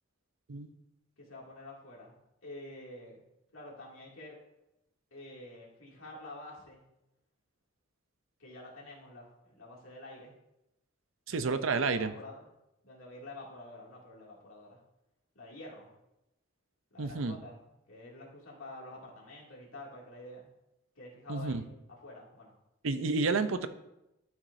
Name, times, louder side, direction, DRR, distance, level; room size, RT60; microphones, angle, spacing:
voice 1, 1.2-2.2 2.4-3.2 3.5-4.4 5.1-6.8 8.4-10.3 11.3-12.4 12.8-14.8 15.3-15.9 16.9-17.6 17.9-20.5 21.0-21.6 21.9-22.5, left 2 dB, 75° left, -4 dB, 2.5 m, -48 dB
voice 2, 11.3-12.1 17.0-17.4 21.3-21.6 22.8-23.7, right 4 dB, 65° right, 10 dB, 0.6 m, -30 dB
12.5 x 6.0 x 2.7 m, 0.89 s
head